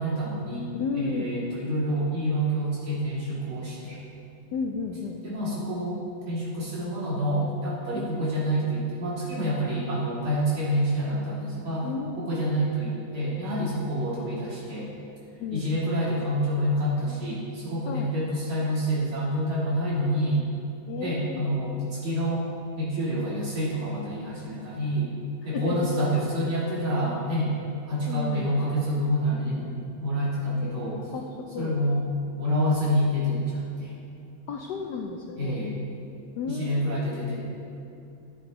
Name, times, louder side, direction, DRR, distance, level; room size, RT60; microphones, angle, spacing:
voice 1, 0.0-0.7 1.0-4.0 5.2-6.0 6.3-11.9 12.2-14.9 15.5-20.4 21.0-22.5 22.8-25.1 25.4-27.5 27.8-31.0 31.6-32.0 32.4-33.9 35.4-35.8 36.5-37.4, equal, 75° right, -8 dB, 3.6 m, -27 dB
voice 2, 0.7-1.3 4.5-5.2 7.9-8.1 11.8-12.5 15.4-15.6 17.9-18.1 20.9-21.5 25.5-25.9 28.1-28.5 30.6-30.7 31.1-31.8 34.5-35.5 36.4-37.0, left 5 dB, 75° left, 2 dB, 1.0 m, -33 dB
14.5 x 7.8 x 3.1 m, 2.7 s
omnidirectional pair, 2.3 m